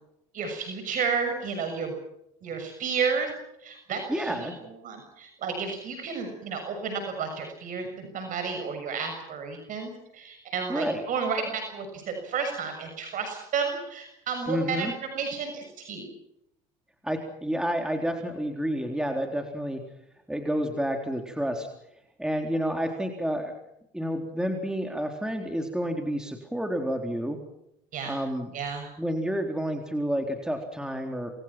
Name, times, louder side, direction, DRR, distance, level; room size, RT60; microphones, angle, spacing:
voice 1, 0.3-1.9 2.4-3.3 3.6-16.1 27.9-28.2 28.5-28.9, right 5 dB, 55° right, 5 dB, 6.7 m, -32 dB
voice 2, 4.1-4.5 10.7-11.0 14.5-14.9 17.0-19.8 20.3-21.7 22.2-23.6 23.9-27.4 28.1-28.5 29.0-31.3, equal, 5° right, 4 dB, 3.8 m, -29 dB
28.5 x 22.0 x 6.0 m, 0.81 s
supercardioid pair, 90°, 16 cm